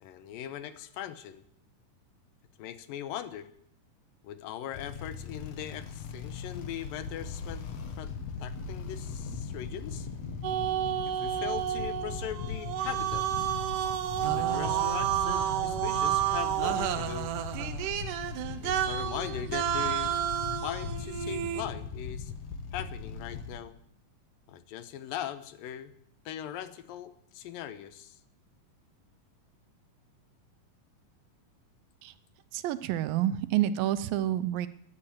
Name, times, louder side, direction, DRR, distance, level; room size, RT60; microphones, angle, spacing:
voice 1, 0.0-1.4 2.6-3.5 4.2-7.7 8.0-8.1 8.4-10.1 11.0-13.5 14.2-17.3 18.6-20.2 20.6-22.3 22.7-23.8 24.5-25.9 26.3-28.2, left 10 dB, 85° left, 12 dB, 2.7 m, -40 dB
sound 1, 4.7-23.6, left 5 dB, 55° left, 2.2 m, -39 dB
sound 2, 10.4-21.6, right 11 dB, 75° right, 2.4 m, -30 dB
voice 2, 32.5-34.7, right 12 dB, 90° right, 14 dB, 2.6 m, -28 dB
13.5 x 11.0 x 8.7 m, 0.69 s
omnidirectional pair, 4.0 m